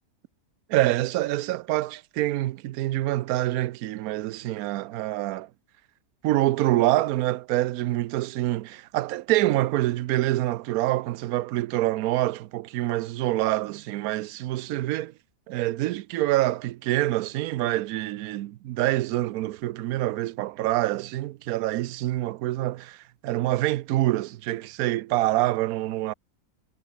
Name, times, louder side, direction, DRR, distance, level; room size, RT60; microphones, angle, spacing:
voice 1, 0.7-5.5 6.2-15.1 15.5-26.1, right 16 dB, 75° right, 1.0 m, -26 dB
omnidirectional pair, 1.6 m